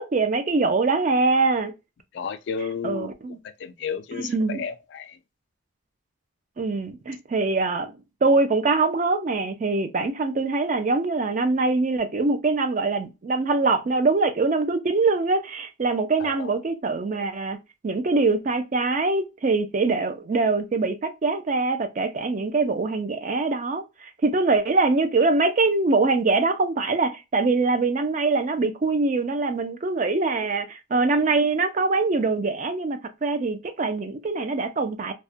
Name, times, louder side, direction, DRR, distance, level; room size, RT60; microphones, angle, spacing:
voice 1, 0.0-1.7 2.8-3.4 4.1-4.6 6.6-7.9 8.2-17.6 17.8-35.1, right 3 dB, 35° right, 0.3 m, -23 dB
voice 2, 2.1-3.1 3.6-5.2 16.2-16.5, left 6 dB, 55° left, 0.3 m, -32 dB
2.3 x 2.1 x 2.6 m
head